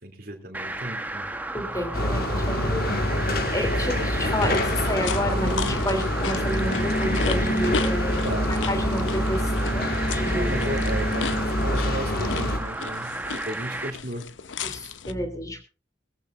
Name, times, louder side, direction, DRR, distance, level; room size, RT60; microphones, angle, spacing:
voice 1, 0.0-1.3 8.2-8.5 10.3-13.2 13.5-14.2, equal, 50° right, 3 dB, 2.8 m, -34 dB
sound 1, 0.5-13.9, right 2 dB, 10° right, 1.0 m, -33 dB
voice 2, 1.5-3.0 3.2-10.6 14.6-15.7, equal, 20° left, 6 dB, 3.0 m, -30 dB
sound 2, 1.9-12.6, left 1 dB, 50° left, 1.8 m, -26 dB
sound 3, 4.2-15.1, left 5 dB, 80° left, 0.8 m, -35 dB
21.0 x 14.5 x 2.5 m, 0.33 s
head